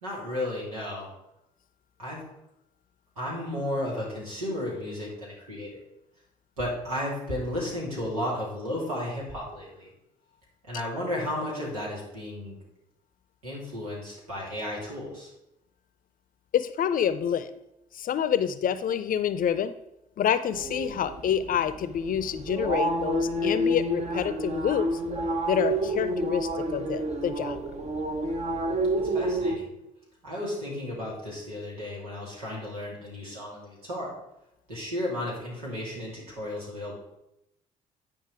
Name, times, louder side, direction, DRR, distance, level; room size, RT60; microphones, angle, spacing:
voice 1, 0.0-1.1 2.0-2.2 3.2-5.8 6.6-9.9 10.7-12.6 13.4-15.3 29.1-29.7 30.2-34.1 34.7-37.0, left 1 dB, 85° right, -5 dB, 2.8 m, -33 dB
voice 2, 16.5-17.5 18.0-19.7 20.2-24.9 25.5-27.6, left 9 dB, 50° left, 13 dB, 0.7 m, -27 dB
sound 1, 20.5-29.6, right 1 dB, 40° right, 1.2 m, -29 dB
9.6 x 5.3 x 4.9 m, 0.85 s
figure-of-eight pair, 45°, 18 cm